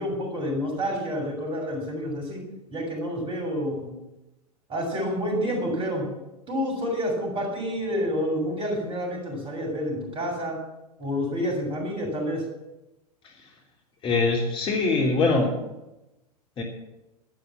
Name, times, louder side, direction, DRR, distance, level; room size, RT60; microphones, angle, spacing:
voice 1, 0.0-2.4 2.7-3.9 4.7-6.1 6.5-10.6 11.0-12.4, equal, 25° right, 2 dB, 7.3 m, -28 dB
voice 2, 14.0-15.5 16.6-16.7, left 3 dB, 25° left, 0 dB, 3.3 m, -22 dB
13.0 x 12.0 x 7.5 m, 0.95 s
figure-of-eight pair, 95°, 20 cm